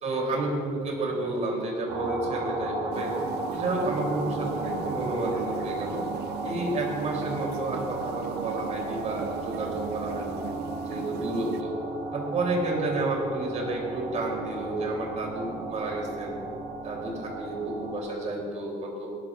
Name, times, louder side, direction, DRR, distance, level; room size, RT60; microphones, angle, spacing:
voice 1, 0.0-3.2 3.5-6.1 6.4-10.5 10.8-11.8 12.1-16.4 16.8-19.1, right 2 dB, 45° right, -1 dB, 3.5 m, -30 dB
sound 1, 1.9-18.0, right 2 dB, 65° right, 2.2 m, -35 dB
sound 2, 2.9-11.6, right 11 dB, 80° right, 0.6 m, -39 dB
18.0 x 12.5 x 2.6 m, 2.4 s
cardioid pair, 110°, 17 cm